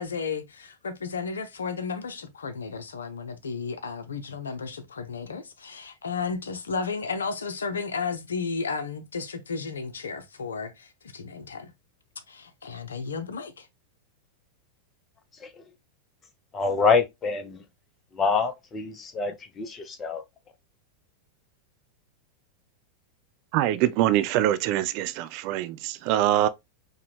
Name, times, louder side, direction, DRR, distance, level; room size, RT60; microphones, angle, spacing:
voice 1, 0.0-11.7 12.3-13.7, left 5 dB, 70° left, 0.6 m, -33 dB
voice 2, 16.5-17.6 18.1-20.2, left 4 dB, 20° left, 0.7 m, -26 dB
voice 3, 23.5-26.5, right 13 dB, 45° right, 0.3 m, -24 dB
4.7 x 2.2 x 3.1 m
figure-of-eight pair, 90°, 0 cm